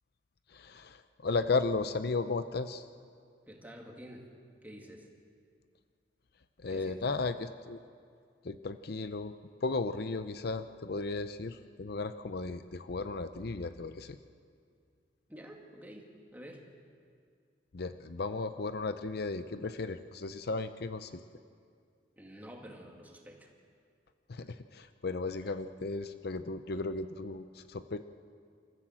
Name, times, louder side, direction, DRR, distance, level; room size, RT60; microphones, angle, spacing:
voice 1, 0.5-2.8 6.6-7.8 8.4-9.3 9.6-14.2 17.7-21.2 24.3-28.0, left 3 dB, 60° left, 11 dB, 0.6 m, -35 dB
voice 2, 3.5-4.3 4.6-5.1 6.7-7.1 15.3-16.7 22.2-23.5 25.4-25.5, equal, 10° right, 0 dB, 2.3 m, -49 dB
28.0 x 14.0 x 7.5 m, 2.2 s
head